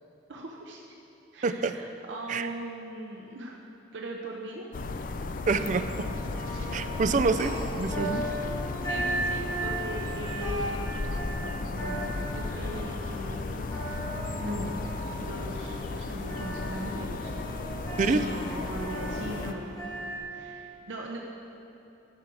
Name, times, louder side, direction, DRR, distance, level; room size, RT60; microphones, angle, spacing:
voice 1, 0.3-0.8 1.3-3.6 3.9-4.7 6.5-7.0 8.8-14.0 14.4-14.8 15.2-17.3 18.0-19.8 20.3-21.2, right 1 dB, 85° right, 0 dB, 0.8 m, -39 dB
voice 2, 1.4-1.7 2.3-2.5 5.5-6.1 6.7-8.3 18.0-18.2, right 4 dB, 40° right, 11 dB, 0.4 m, -27 dB
sound 1, 4.7-19.5, left 3 dB, 45° left, 0.4 m, -35 dB
sound 2, 5.5-20.2, right 1 dB, 20° left, 2.3 m, -37 dB
11.5 x 6.2 x 4.7 m, 2.9 s
head